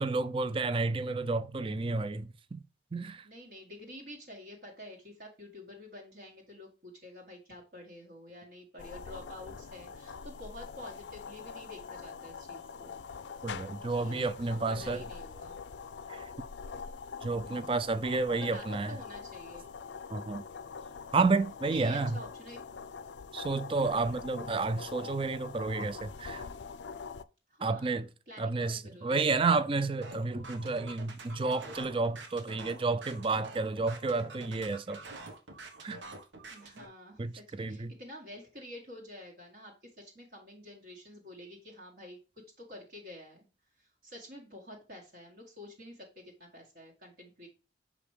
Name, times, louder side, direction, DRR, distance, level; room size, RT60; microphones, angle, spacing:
voice 1, 0.0-2.6 2.9-3.3 13.4-15.0 16.1-16.3 17.2-19.0 20.1-20.4 21.1-22.2 23.3-26.4 27.6-28.1 28.4-35.0 35.8-36.0 37.2-37.9, right 3 dB, 30° right, 0.4 m, -31 dB
voice 2, 3.2-12.9 13.9-15.6 17.4-17.7 18.4-19.7 21.7-22.6 23.9-24.1 27.5-29.4 36.5-42.2 42.6-43.5 43.8-47.5, left 1 dB, 55° right, 1.8 m, -49 dB
sound 1, 8.8-27.2, left 5 dB, 75° left, 0.4 m, -44 dB
sound 2, 30.0-36.9, right 2 dB, 85° right, 1.3 m, -47 dB
5.9 x 5.1 x 3.3 m
head